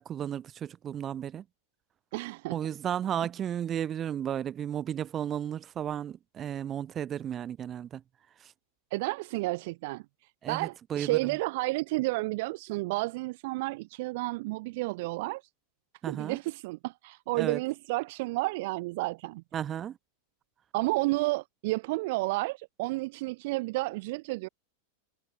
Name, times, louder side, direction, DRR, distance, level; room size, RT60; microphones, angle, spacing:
voice 1, 0.0-1.4 2.5-8.0 8.4-8.5 10.4-11.3 16.0-16.4 17.4-17.6 19.5-20.0, right 9 dB, 25° right, 1.2 m, -34 dB
voice 2, 2.1-2.6 8.9-10.0 10.5-15.4 16.1-19.4 20.7-24.5, right 22 dB, 50° right, 0.5 m, -31 dB
figure-of-eight pair, 90°, 0 cm